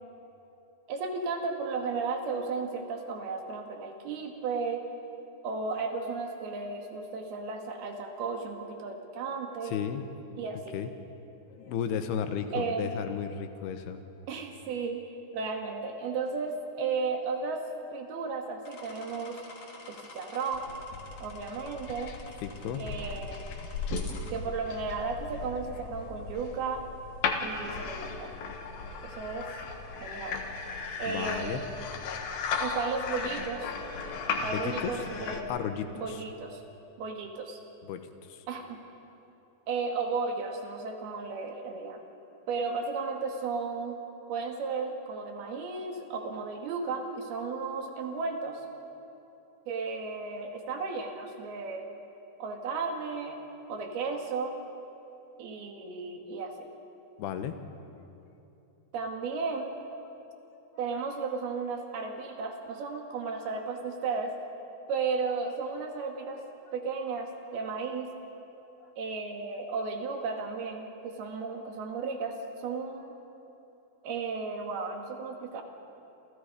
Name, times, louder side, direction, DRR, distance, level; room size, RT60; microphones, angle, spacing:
voice 1, 0.9-4.9 5.4-9.8 10.4-10.8 12.5-13.0 14.3-15.0 15.3-17.6 17.9-19.4 19.9-20.7 21.2-22.1 22.8-23.4 24.3-26.9 27.4-28.3 29.0-29.5 30.0-30.4 31.0-31.9 32.6-33.7 34.4-35.5 36.0-36.6 37.0-37.6 38.5-38.8 39.7-42.0 42.5-44.0 44.3-48.6 49.7-51.9 52.4-53.4 53.7-54.6 55.4-56.7 58.9-59.7 60.8-64.4 64.9-66.4 66.7-68.1 69.0-73.1 74.0-75.6, right 4 dB, 80° right, 3 dB, 4.0 m, -34 dB
voice 2, 9.6-10.1 10.7-10.9 11.6-14.0 22.4-22.8 31.1-31.6 34.4-35.0 35.5-36.2 37.8-38.0 38.3-38.4 57.2-57.6 68.8-68.9, left 8 dB, 90° left, 8 dB, 3.2 m, -34 dB
sound 1, 18.7-24.3, left 3 dB, 40° left, 3.7 m, -49 dB
sound 2, 20.5-35.4, left 5 dB, 70° left, 3.2 m, -36 dB
28.0 x 28.0 x 5.2 m, 2.9 s
omnidirectional pair, 4.5 m